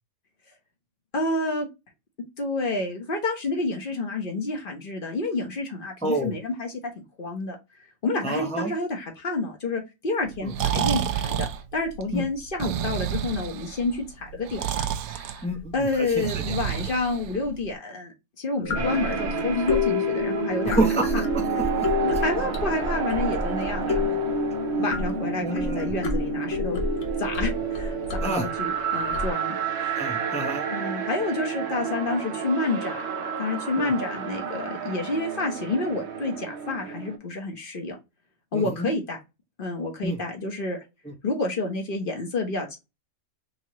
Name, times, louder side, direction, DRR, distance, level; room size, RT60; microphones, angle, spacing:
voice 1, 1.1-1.7 2.4-7.6 8.0-11.5 11.7-15.4 15.7-20.8 21.1-21.2 22.0-24.2 24.7-26.8 27.2-29.6 30.7-33.0 33.4-37.9 38.5-39.2 39.6-40.8 41.2-42.8, left 3 dB, 40° left, 2 dB, 1.3 m, -29 dB
voice 2, 6.0-6.3 8.2-8.7 10.4-10.5 12.1-12.2 15.4-15.9 16.2-16.6 18.7-18.8 20.6-21.4 21.8-21.9 23.8-23.9 25.4-25.8 28.2-28.5 30.0-30.7 33.8-33.9 38.5-38.9 40.0-40.2 41.1-41.2, right 2 dB, 10° left, 3 dB, 0.3 m, -28 dB
Breathing, 10.3-17.7, right 10 dB, 80° right, 1.1 m, -30 dB
sound 1, 18.6-28.7 29.1-29.3, left 4 dB, 60° left, 1.2 m, -29 dB
sound 2, 18.8-37.2, right 7 dB, 60° right, 0.9 m, -30 dB
3.9 x 3.6 x 3.0 m, 0.25 s
omnidirectional pair, 1.5 m